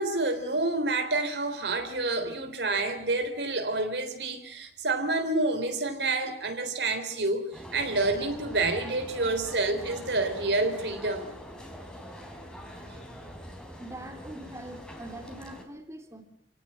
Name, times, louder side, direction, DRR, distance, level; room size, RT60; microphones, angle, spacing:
voice 1, 0.0-11.3, right 2 dB, 75° right, 6 dB, 3.6 m, -28 dB
sound 1, 7.5-15.6, equal, 5° left, 3.8 m, -44 dB
voice 2, 13.8-16.2, right 1 dB, 15° right, 4 dB, 3.6 m, -43 dB
28.0 x 17.5 x 8.7 m, 0.69 s
head